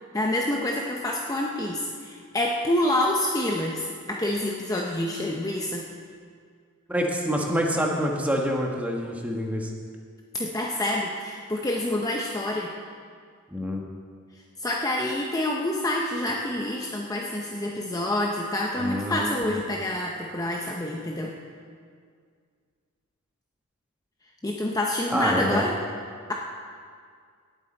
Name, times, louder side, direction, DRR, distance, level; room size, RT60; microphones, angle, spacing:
voice 1, 0.1-5.8 10.3-12.7 14.6-21.3 24.4-25.8, left 1 dB, 15° left, -1 dB, 0.6 m, -27 dB
voice 2, 6.9-9.7 13.5-13.8 18.8-19.6 25.1-25.7, equal, 5° right, 0 dB, 1.2 m, -26 dB
18.0 x 8.1 x 4.3 m, 2.1 s
head